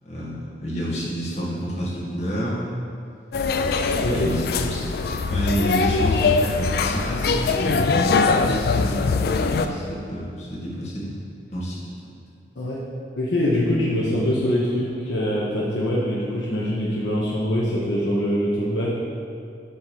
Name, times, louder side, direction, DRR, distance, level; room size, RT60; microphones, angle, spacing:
voice 1, 0.0-2.6 3.7-4.9 5.3-9.0 9.4-11.2 11.5-12.1, right 1 dB, 35° left, -7 dB, 1.7 m, -29 dB
sound 1, 3.3-9.7, left 4 dB, 55° left, 0.4 m, -22 dB
voice 2, 4.0-4.3 12.6-12.8 13.2-18.9, equal, 70° left, -5 dB, 1.0 m, -23 dB
7.1 x 3.7 x 6.2 m, 2.4 s
head